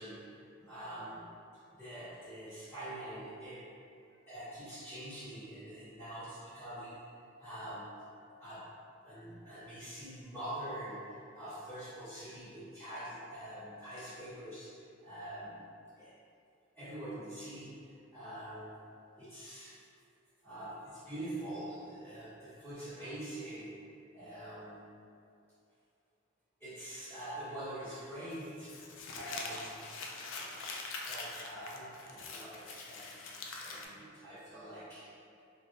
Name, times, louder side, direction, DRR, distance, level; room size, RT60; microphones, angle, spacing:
voice 1, 0.0-1.3 1.7-3.7 4.3-7.0 7.4-8.1 8.4-8.8 9.0-15.6 16.0-16.1 16.7-18.8 19.2-19.8 20.4-23.9 24.1-24.8 26.6-28.9 29.1-29.9 31.0-33.2 33.6-35.2, right 1 dB, 5° left, -20 dB, 1.2 m, -45 dB
Crumpling crinkling, 28.3-33.9, left 3 dB, 70° left, 0.4 m, -44 dB
3.5 x 2.1 x 2.6 m, 2.5 s
head